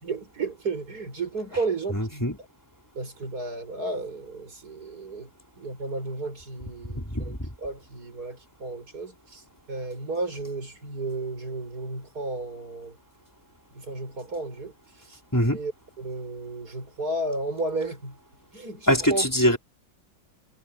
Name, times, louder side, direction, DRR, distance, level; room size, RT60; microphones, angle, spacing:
voice 1, 0.0-2.2 2.9-5.3 5.6-7.3 7.6-13.0 13.7-15.2 15.5-15.7 16.0-18.2 18.5-19.3, right 3 dB, 45° right, 6.7 m, -33 dB
voice 2, 1.9-2.4 6.9-7.5 15.3-15.6 18.9-19.6, equal, 10° left, 4.7 m, -23 dB
omnidirectional pair, 2.2 m